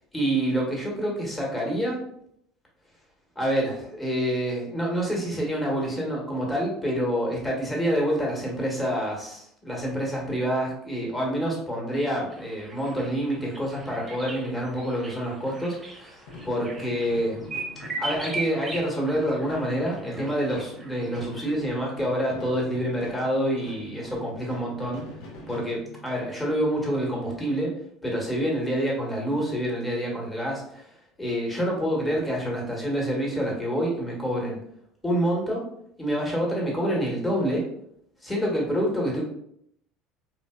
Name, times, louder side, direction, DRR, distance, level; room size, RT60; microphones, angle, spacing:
voice 1, 0.1-2.0 3.3-16.2 16.4-17.4 18.0-25.1 25.5-27.7 28.0-30.9 31.2-34.6 35.0-35.6 36.0-37.7 38.2-39.2, equal, 15° left, -3 dB, 1.3 m, -27 dB
sound 1, 12.3-21.5, right 3 dB, 15° right, 0.9 m, -39 dB
sound 2, 16.2-26.4, left 1 dB, 60° left, 0.7 m, -44 dB
3.8 x 2.8 x 2.3 m, 0.71 s
figure-of-eight pair, 65°, 0 cm